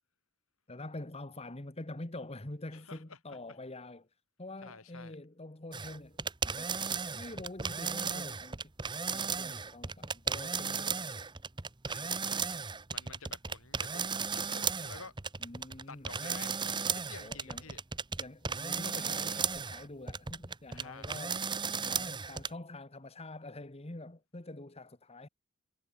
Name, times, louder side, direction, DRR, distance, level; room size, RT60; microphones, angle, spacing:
voice 1, 0.7-4.1 4.4-6.2 6.5-6.8 7.1-8.6 9.1-11.3 15.4-16.1 17.2-17.6 18.2-21.5 21.8-25.3, left 2 dB, 25° left, 1.4 m, -46 dB
voice 2, 2.7-3.4 4.6-5.2 11.9-12.5 12.9-14.0 14.3-15.1 15.9-16.5 16.9-17.8 20.7-21.1, left 4 dB, 70° left, 3.4 m, -50 dB
sound 1, 5.7-22.5, right 5 dB, 20° right, 1.0 m, -35 dB
head